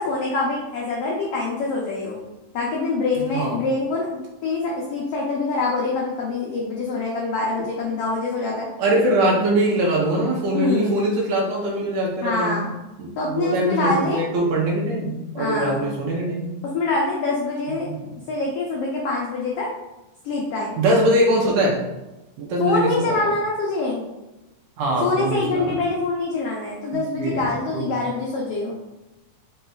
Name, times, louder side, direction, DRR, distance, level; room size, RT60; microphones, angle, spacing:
voice 1, 0.0-2.2 2.5-8.7 10.5-11.0 12.2-12.8 13.2-14.2 15.4-15.9 16.6-17.9 18.3-19.7 20.2-20.8 22.6-24.0 25.0-28.8, left 3 dB, 90° left, -3 dB, 1.3 m, -25 dB
voice 2, 8.8-12.6 13.0-16.5 17.7-18.1 20.8-21.8 22.4-23.3 24.8-25.8 26.9-27.5 27.7-28.0, right 1 dB, 70° right, -2 dB, 2.0 m, -22 dB
5.7 x 3.9 x 2.3 m, 0.99 s
omnidirectional pair, 3.7 m